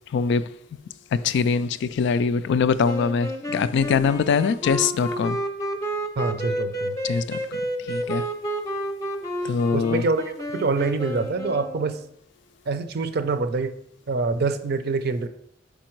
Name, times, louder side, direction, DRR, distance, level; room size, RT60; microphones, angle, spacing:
voice 1, 0.1-0.6 1.1-5.4 7.0-8.3 9.4-10.0, left 5 dB, 65° left, 0.3 m, -23 dB
sound 1, 2.8-12.0, equal, 20° left, 0.6 m, -30 dB
voice 2, 6.2-7.0 9.7-10.2 10.5-12.0 12.7-13.7 14.1-15.3, right 4 dB, 55° right, 0.5 m, -25 dB
5.1 x 4.8 x 4.5 m
head